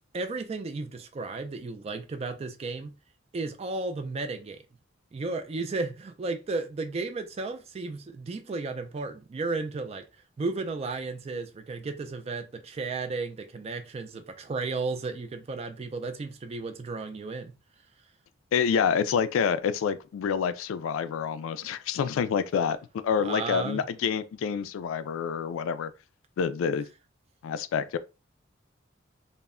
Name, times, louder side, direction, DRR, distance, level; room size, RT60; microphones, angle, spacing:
voice 1, 0.1-2.9 3.3-4.6 5.1-10.0 10.4-17.5 23.2-23.8, right 3 dB, 30° right, 0.3 m, -34 dB
voice 2, 18.5-25.9 26.4-26.9 27.4-28.0, left 7 dB, 85° left, 0.3 m, -27 dB
2.1 x 2.1 x 3.5 m
head